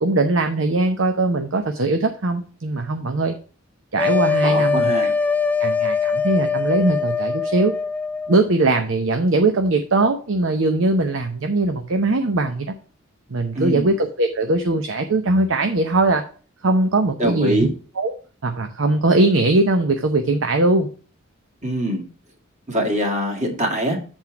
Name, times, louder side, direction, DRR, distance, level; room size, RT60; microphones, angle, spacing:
voice 1, 0.0-3.4 3.9-4.9 5.6-7.7 8.3-12.7 13.3-16.2 16.6-17.7 18.0-18.2 18.4-20.9, right 2 dB, 65° right, 6 dB, 0.8 m, -20 dB
sound 1, 4.0-8.4, left 5 dB, 10° left, 0.5 m, -22 dB
voice 2, 4.4-5.1 13.5-14.0 17.2-17.7 21.6-22.0 22.7-24.0, right 1 dB, 35° right, 1 dB, 2.0 m, -23 dB
7.8 x 4.4 x 5.8 m, 0.39 s
head